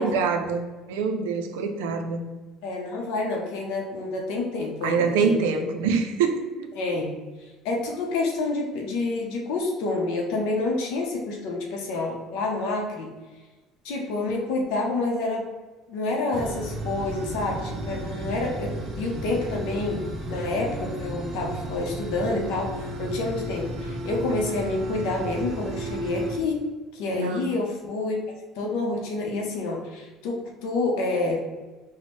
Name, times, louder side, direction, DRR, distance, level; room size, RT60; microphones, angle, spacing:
voice 1, 0.0-2.2 4.8-6.7 27.1-27.4, right 5 dB, 85° right, 6 dB, 0.4 m, -25 dB
voice 2, 2.6-5.7 6.7-7.2 7.6-13.1 13.8-15.4 15.9-26.6 26.9-28.2 28.6-31.4, left 3 dB, 80° left, 0 dB, 0.6 m, -28 dB
sound 1, 16.3-26.4, right 2 dB, 45° right, 0.6 m, -33 dB
4.2 x 2.1 x 3.0 m, 1.2 s
supercardioid pair, 85°, 0 cm